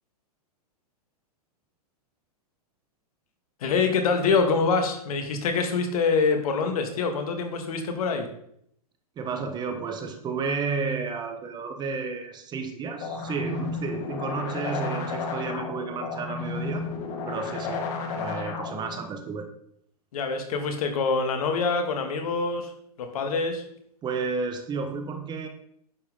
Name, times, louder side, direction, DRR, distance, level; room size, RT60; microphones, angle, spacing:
voice 1, 3.6-8.3 20.1-22.7 23.0-23.6, left 4 dB, 65° left, 5 dB, 2.0 m, -25 dB
voice 2, 9.2-16.9 17.3-17.8 18.1-19.5 24.0-25.5, right 5 dB, 20° right, 6 dB, 1.2 m, -32 dB
sound 1, 13.0-19.0, left 4 dB, 40° left, 1.7 m, -32 dB
10.5 x 7.5 x 3.7 m, 0.69 s
hypercardioid pair, 130°, 20 cm